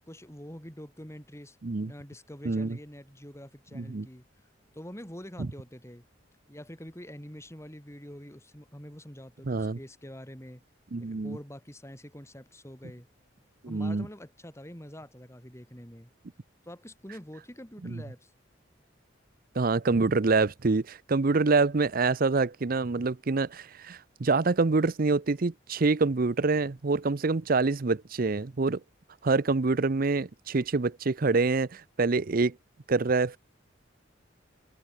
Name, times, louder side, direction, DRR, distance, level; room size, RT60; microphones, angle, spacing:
voice 1, 0.1-1.6 1.8-4.3 4.7-6.0 6.5-10.6 11.0-13.1 13.7-16.1 16.6-18.3, equal, 15° left, 4.4 m, -45 dB
voice 2, 2.4-2.8 3.7-4.1 9.5-9.8 10.9-11.4 13.6-14.1 17.8-18.0 19.6-28.8 29.2-32.6 32.9-33.4, right 3 dB, 50° right, 0.6 m, -26 dB
head